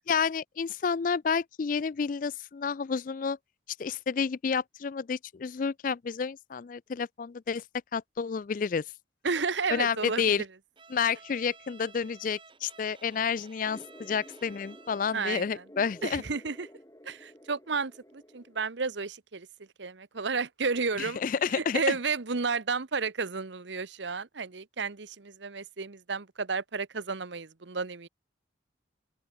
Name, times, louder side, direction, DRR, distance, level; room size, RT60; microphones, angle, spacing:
voice 1, 0.1-3.4 3.8-7.6 7.9-8.8 9.7-10.4 10.9-16.2 21.0-21.8, left 6 dB, 45° left, 0.4 m, -30 dB
voice 2, 9.2-10.5 15.1-15.6 16.0-16.7 17.0-19.5 19.8-21.2 21.5-28.1, right 4 dB, 70° right, 1.0 m, -32 dB
Bowed string instrument, 10.8-15.3, right 4 dB, 25° right, 6.1 m, -54 dB
sound 1, 13.6-18.6, equal, 15° left, 6.6 m, -52 dB
open air
head